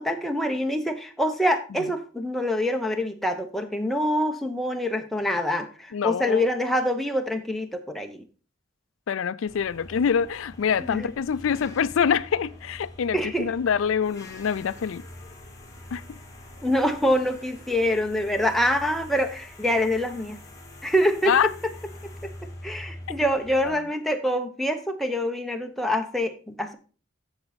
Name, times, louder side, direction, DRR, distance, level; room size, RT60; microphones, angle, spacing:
voice 1, 0.0-8.2 10.8-11.1 13.1-13.5 16.6-20.4 20.8-21.3 22.2-22.3 22.6-26.8, equal, ahead, 0.8 m, -25 dB
voice 2, 5.9-6.4 9.1-15.0 15.9-16.2 21.3-21.5 23.6-23.7, left 7 dB, 80° left, 0.4 m, -25 dB
sound 1, 9.5-23.7, left 1 dB, 15° left, 1.8 m, -45 dB
7.7 x 7.1 x 4.0 m
head